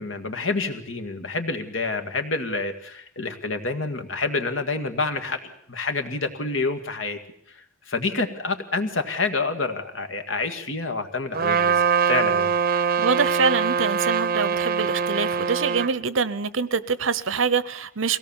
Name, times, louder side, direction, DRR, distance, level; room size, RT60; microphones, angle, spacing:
voice 1, 0.0-7.2 7.9-12.5, left 3 dB, 70° left, 8 dB, 2.0 m, -28 dB
Trumpet, 11.3-15.9, right 6 dB, 50° right, 0.8 m, -23 dB
voice 2, 13.0-18.2, right 5 dB, 80° right, 17 dB, 0.9 m, -25 dB
23.0 x 17.5 x 7.2 m, 0.67 s
head